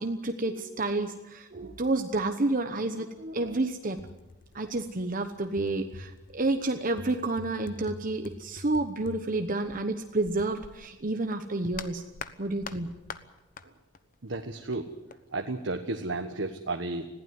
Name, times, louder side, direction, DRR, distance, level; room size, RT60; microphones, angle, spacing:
voice 1, 0.0-4.0 4.5-12.0 12.4-12.9, right 2 dB, 45° right, 7 dB, 1.1 m, -30 dB
sound 1, 3.1-3.3 3.5-10.9 11.3-13.7 13.9-15.2, left 4 dB, 45° left, 1.1 m, -45 dB
voice 2, 14.2-14.9 15.3-17.1, right 2 dB, 80° right, 4 dB, 1.3 m, -33 dB
21.0 x 15.5 x 9.5 m, 0.99 s
head